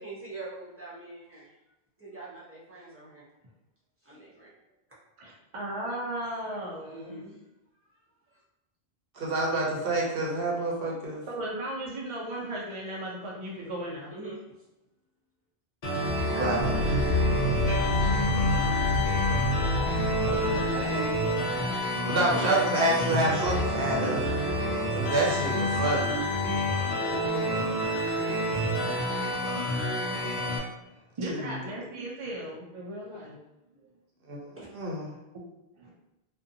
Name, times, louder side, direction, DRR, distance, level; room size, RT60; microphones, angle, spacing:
voice 1, 0.0-1.5 2.0-3.2 4.0-4.5 6.9-7.4 7.9-8.0 8.3-8.4 14.1-14.4 17.2-17.9 20.8-20.9 27.0-27.8 34.5-34.7, right 2 dB, 15° right, -8 dB, 0.7 m, -43 dB
voice 2, 5.2-7.2 11.3-14.1 16.3-16.9 20.3-21.2 22.3-23.7 28.5-28.6 29.5-29.8 30.9-33.4 35.8-35.9, right 1 dB, 50° right, -3 dB, 0.4 m, -36 dB
voice 3, 9.1-11.2 16.4-16.7 22.1-24.2 25.0-26.2 31.3-31.6 34.3-35.1, right 2 dB, 70° right, -2 dB, 0.8 m, -28 dB
sound 1, 15.8-30.6, left 1 dB, 50° left, 0.6 m, -28 dB
sound 2, 16.6-21.8, left 1 dB, 75° left, 0.9 m, -29 dB
2.5 x 2.2 x 2.6 m, 0.93 s
omnidirectional pair, 1.0 m